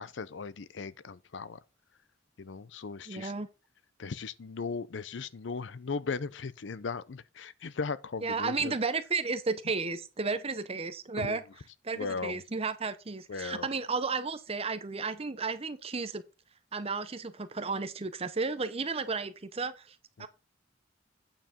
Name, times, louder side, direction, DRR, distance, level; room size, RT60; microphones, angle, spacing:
voice 1, 0.0-1.6 2.4-3.3 4.0-8.7 11.2-11.4 11.9-12.4 13.3-13.7 20.2-20.3, left 4 dB, 70° left, 0.6 m, -37 dB
voice 2, 3.1-3.5 8.2-11.4 11.8-16.2 16.7-20.3, right 4 dB, 30° right, 0.8 m, -33 dB
8.9 x 4.7 x 5.1 m
head